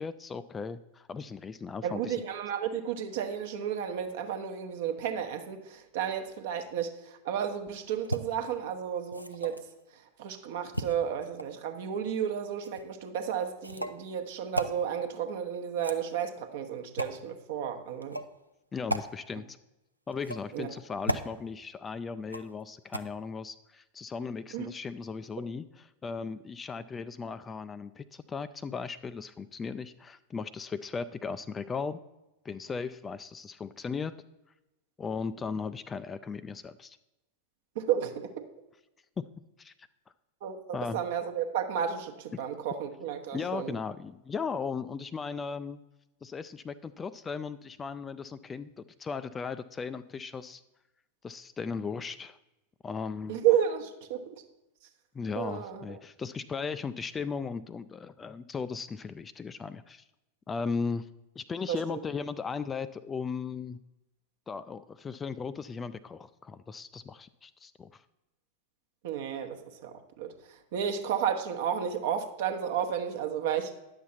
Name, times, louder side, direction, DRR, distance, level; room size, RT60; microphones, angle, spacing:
voice 1, 0.0-2.2 18.7-19.6 20.1-32.0 32.4-34.1 35.0-37.0 39.2-39.3 39.6-39.9 40.7-41.0 43.3-45.8 46.2-50.6 51.2-52.4 52.8-53.4 55.1-60.0 60.5-61.1 61.4-63.8 64.5-68.0, left 5 dB, 20° left, 13 dB, 0.3 m, -37 dB
voice 2, 1.8-6.9 7.2-9.6 10.2-18.2 20.5-20.7 24.5-24.7 37.8-38.3 40.4-43.7 53.3-54.3 55.3-55.8 61.7-61.8 69.0-69.6 69.8-69.9 70.2-70.3 70.7-73.7, right 9 dB, 55° right, 6 dB, 0.9 m, -32 dB
sound 1, 8.0-8.2 9.1-9.7 10.7-11.6 12.6-12.8 13.6-14.0 14.5-14.7 15.7-16.3 17.0-17.2 18.0-18.3 18.9-19.1 20.1-20.6 21.1-21.3 22.3-22.6 22.9-23.0, right 1 dB, 90° right, 0.4 m, -34 dB
10.0 x 7.0 x 4.2 m, 0.97 s
figure-of-eight pair, 90°, 0 cm